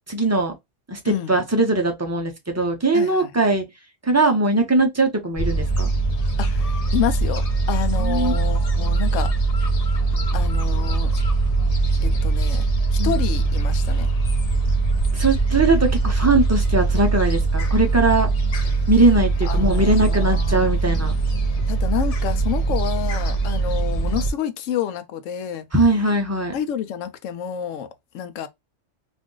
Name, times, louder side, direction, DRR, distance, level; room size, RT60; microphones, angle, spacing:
voice 1, 0.1-0.5 0.9-3.6 4.0-5.9 8.0-8.3 13.0-13.2 15.1-18.3 18.9-21.1 25.7-26.5, right 2 dB, 25° right, 0.3 m, -20 dB
voice 2, 1.0-1.4 2.9-3.3 6.4-7.4 7.7-9.3 10.3-11.1 12.0-12.6 12.9-14.1 19.4-20.8 21.7-25.7 26.5-27.9 28.1-28.5, left 9 dB, 90° left, 0.9 m, -29 dB
Gull seagull, 5.4-24.3, right 3 dB, 50° left, 0.5 m, -21 dB
2.6 x 2.5 x 3.6 m
omnidirectional pair, 1.3 m